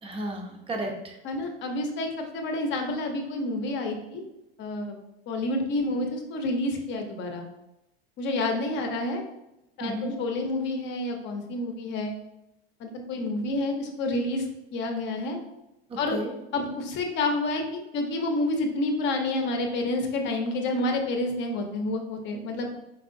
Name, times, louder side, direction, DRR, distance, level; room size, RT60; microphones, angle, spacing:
voice 1, 0.0-1.2 9.8-10.1 15.9-16.3, right 1 dB, 20° right, 3 dB, 0.7 m, -33 dB
voice 2, 1.2-4.2 4.6-5.0 5.3-7.5 8.2-9.2 9.8-9.9 10.2-12.1 12.8-15.4 16.0-16.2 16.5-22.8, left 2 dB, 35° left, 4 dB, 0.8 m, -29 dB
4.7 x 3.6 x 2.6 m, 0.90 s
supercardioid pair, 125°, 31 cm